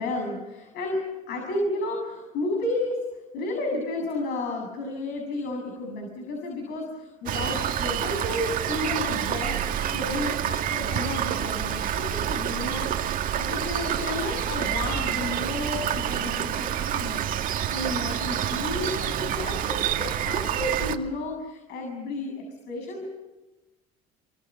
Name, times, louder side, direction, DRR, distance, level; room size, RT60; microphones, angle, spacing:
voice 1, 0.0-3.0 3.3-23.1, left 2 dB, 65° left, 2 dB, 7.5 m, -32 dB
Rain, 7.3-21.0, right 10 dB, 50° right, 2.2 m, -28 dB
28.5 x 24.5 x 7.6 m, 1.1 s
supercardioid pair, 100°, 18 cm